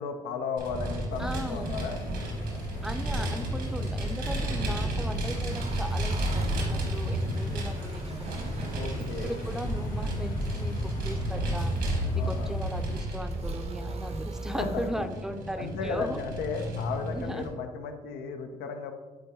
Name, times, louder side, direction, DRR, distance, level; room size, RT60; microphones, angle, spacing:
voice 1, 0.0-2.0 8.7-9.4 12.1-12.5 14.6-14.7 14.9-18.9, left 5 dB, 80° left, 6 dB, 0.6 m, -35 dB
Vehicle, 0.6-17.5, right 1 dB, 75° right, 1.5 m, -32 dB
sound 1, 1.1-13.0, left 2 dB, 60° left, 1.2 m, -43 dB
voice 2, 1.2-1.8 2.8-8.4 9.0-16.2 17.1-17.5, right 1 dB, 5° right, 7 dB, 0.6 m, -37 dB
sound 2, 5.5-14.9, right 3 dB, 40° right, 0.7 m, -43 dB
9.2 x 3.7 x 2.8 m, 1.4 s
hypercardioid pair, 50°, 16 cm